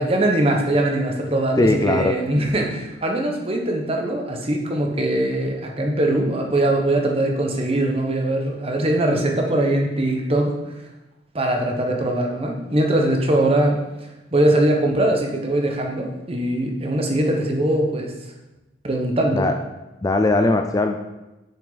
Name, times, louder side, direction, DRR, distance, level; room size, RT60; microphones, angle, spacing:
voice 1, 0.0-10.6 11.3-13.8 14.3-18.1 18.8-19.5, right 1 dB, 30° right, 1 dB, 1.0 m, -21 dB
voice 2, 1.6-2.1 19.3-19.5 20.0-21.0, left 2 dB, 20° left, 5 dB, 0.3 m, -19 dB
7.2 x 5.8 x 3.9 m, 1.0 s
head